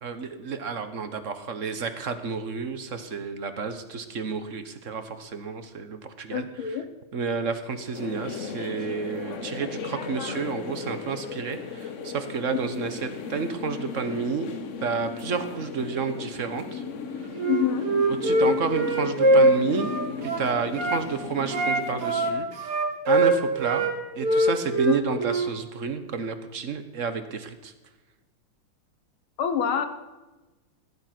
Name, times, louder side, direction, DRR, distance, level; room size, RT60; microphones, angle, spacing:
voice 1, 0.0-6.5 7.1-14.5 14.8-16.8 18.1-19.9 20.2-22.5 23.1-23.9 24.2-27.7, right 5 dB, 45° right, 9 dB, 1.2 m, -30 dB
voice 2, 6.3-6.9 12.5-12.6 17.5-17.9 24.9-25.3 29.4-29.9, left 8 dB, 70° left, 8 dB, 2.0 m, -27 dB
sound 1, 7.9-22.3, left 5 dB, 50° left, 1.0 m, -36 dB
Wind instrument woodwind instrument, 17.4-21.0 21.5-23.9 24.2-25.5, right 1 dB, 80° right, 3.0 m, -22 dB
16.5 x 11.5 x 6.0 m, 1.1 s
omnidirectional pair, 2.4 m